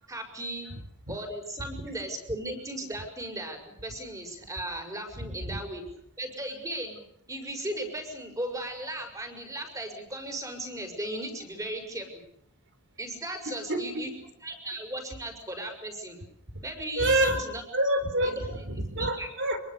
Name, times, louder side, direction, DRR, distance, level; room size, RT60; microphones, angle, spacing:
voice 1, 0.1-0.7 1.1-5.8 6.2-7.0 7.3-12.1 13.0-14.1 14.4-16.2 16.6-17.6 18.2-19.3, right 1 dB, 15° right, 6.5 m, -36 dB
voice 2, 5.2-5.6 13.5-14.0 17.0-17.4 17.7-19.6, right 1 dB, 55° right, 4.2 m, -28 dB
26.0 x 23.5 x 6.9 m
head